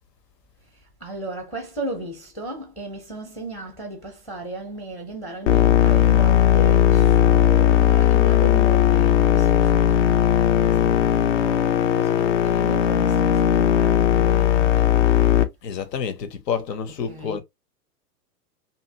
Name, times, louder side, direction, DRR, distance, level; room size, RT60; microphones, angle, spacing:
voice 1, 0.6-15.3 17.0-17.4, right 1 dB, 5° left, 0.5 m, -36 dB
sound 1, 5.5-15.4, left 10 dB, 50° left, 0.5 m, -17 dB
voice 2, 15.6-17.4, left 7 dB, 80° left, 0.9 m, -28 dB
2.8 x 2.6 x 2.7 m
hypercardioid pair, 120°, 48 cm